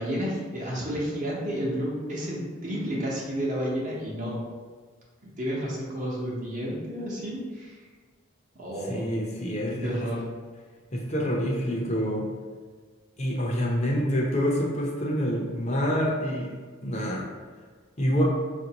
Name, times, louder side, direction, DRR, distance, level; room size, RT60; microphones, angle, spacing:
voice 1, 0.0-4.4 5.2-7.8 8.6-9.1 9.8-10.2, equal, 40° right, -4 dB, 0.8 m, -31 dB
voice 2, 8.9-10.1 10.9-12.3 13.2-16.5 16.8-17.3 18.0-18.2, equal, 35° left, -2 dB, 0.6 m, -27 dB
5.0 x 2.6 x 2.9 m, 1.5 s
head